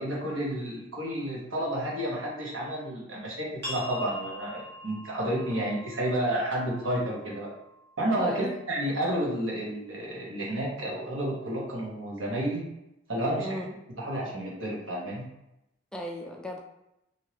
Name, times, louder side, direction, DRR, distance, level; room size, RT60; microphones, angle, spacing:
voice 1, 0.0-7.5 8.0-12.6 13.1-13.5 14.0-15.2, right 1 dB, 80° right, -4 dB, 1.1 m, -31 dB
sound 1, 3.6-9.0, left 1 dB, 60° right, 1.4 m, -44 dB
voice 2, 8.2-8.5 13.4-13.8 15.9-16.6, equal, 5° left, 0 dB, 0.3 m, -35 dB
3.1 x 2.7 x 2.8 m, 0.87 s
head